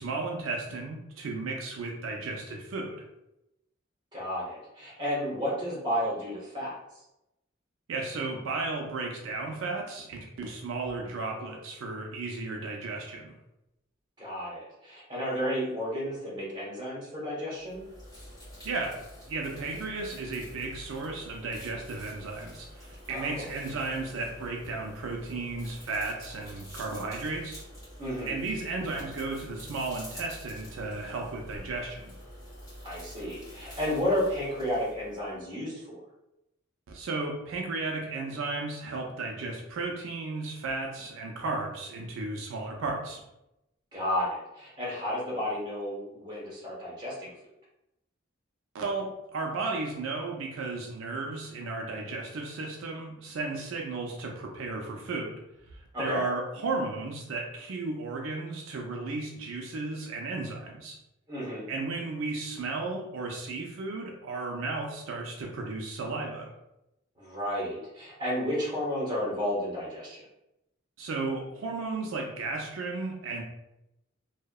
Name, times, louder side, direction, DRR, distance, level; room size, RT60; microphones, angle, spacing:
voice 1, 0.0-3.0 7.9-13.4 18.6-19.0 19.3-27.6 28.3-32.1 36.9-43.2 48.7-55.4 55.7-61.0 61.7-66.5 71.0-73.4, right 3 dB, 80° right, 1 dB, 0.4 m, -34 dB
voice 2, 4.1-6.8 14.2-17.8 23.1-23.5 28.0-28.3 32.8-36.0 43.9-47.3 55.9-56.2 61.3-61.7 67.2-70.2, equal, 20° right, -7 dB, 0.9 m, -32 dB
sound 1, 17.6-35.4, equal, 20° left, 1.2 m, -47 dB
2.7 x 2.1 x 2.2 m, 0.89 s
head